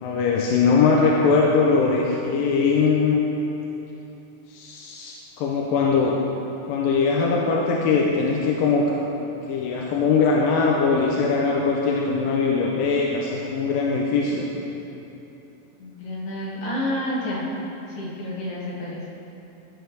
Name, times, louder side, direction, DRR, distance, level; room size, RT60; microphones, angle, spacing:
voice 1, 0.0-3.2 4.5-6.4 6.7-8.9 9.5-14.5, left 4 dB, 85° left, -2 dB, 2.4 m, -21 dB
voice 2, 15.8-17.5 17.9-19.0, left 1 dB, 65° left, -7 dB, 3.3 m, -29 dB
12.5 x 7.9 x 3.4 m, 3.0 s
omnidirectional pair, 4.1 m